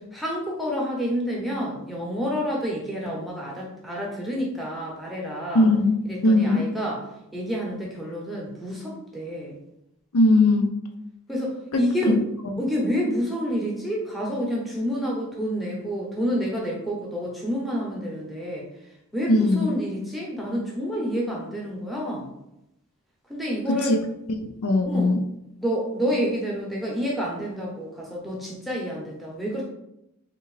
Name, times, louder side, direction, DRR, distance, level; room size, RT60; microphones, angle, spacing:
voice 1, 0.1-5.7 6.0-7.0 7.3-9.6 11.3-12.2 12.6-18.7 19.1-22.3 23.3-24.0 24.8-25.2 25.6-29.7, equal, ahead, -3 dB, 0.7 m, -28 dB
voice 2, 5.5-6.7 10.1-10.7 11.7-12.5 19.3-19.7 23.7-24.0 24.3-25.2, left 2 dB, 75° left, 5 dB, 0.5 m, -20 dB
3.6 x 2.8 x 3.2 m, 0.82 s
head